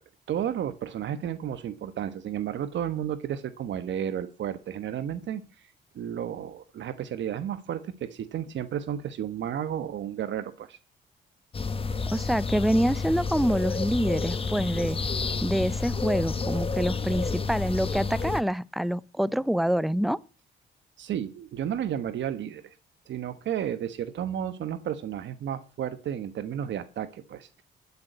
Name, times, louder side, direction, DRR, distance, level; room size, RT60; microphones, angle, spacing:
voice 1, 0.3-5.4 5.9-10.8 21.0-22.7 23.1-27.6, right 9 dB, 65° right, 1.1 m, -32 dB
sound 1, 11.5-18.4, left 4 dB, 30° left, 1.0 m, -30 dB
voice 2, 12.1-15.0 15.4-20.2, equal, ahead, 0.5 m, -26 dB
13.0 x 7.1 x 7.9 m
cardioid pair, 90°, 20 cm